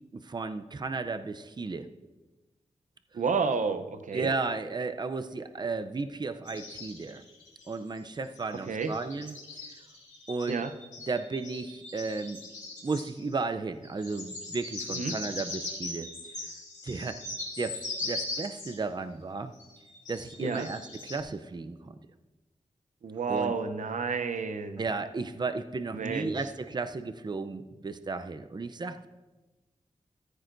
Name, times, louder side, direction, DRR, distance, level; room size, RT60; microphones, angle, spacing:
voice 1, 0.2-1.9 4.1-7.2 7.7-9.8 10.3-10.6 11.1-12.4 12.8-16.1 16.4-16.5 16.8-17.2 17.6-19.5 20.1-21.9 23.3-23.5 24.8-29.1, right 4 dB, 35° right, 9 dB, 0.5 m, -34 dB
voice 2, 3.1-4.3 8.7-8.9 10.5-10.7 14.9-15.2 20.4-20.7 23.0-24.8 25.9-26.3, right 5 dB, 85° right, 9 dB, 0.7 m, -30 dB
sound 1, 6.5-8.0 8.4-13.4 13.8-18.8 19.6-21.2, left 2 dB, 85° left, 3.4 m, -40 dB
14.5 x 13.5 x 2.6 m, 1.1 s
wide cardioid pair, 80°, 13 cm